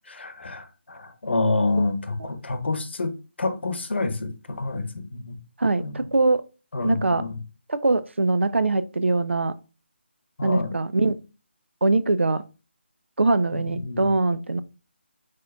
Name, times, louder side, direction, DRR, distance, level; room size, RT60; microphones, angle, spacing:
voice 1, 0.1-5.4 5.8-5.9 6.7-7.3 10.4-10.8 13.5-14.0, left 3 dB, 65° left, 0.8 m, -28 dB
voice 2, 5.6-6.4 6.8-7.2 7.7-9.5 10.4-11.2 11.8-12.4 13.2-14.6, right 2 dB, 80° right, 0.5 m, -22 dB
4.8 x 4.4 x 2.3 m
figure-of-eight pair, 155°, 6 cm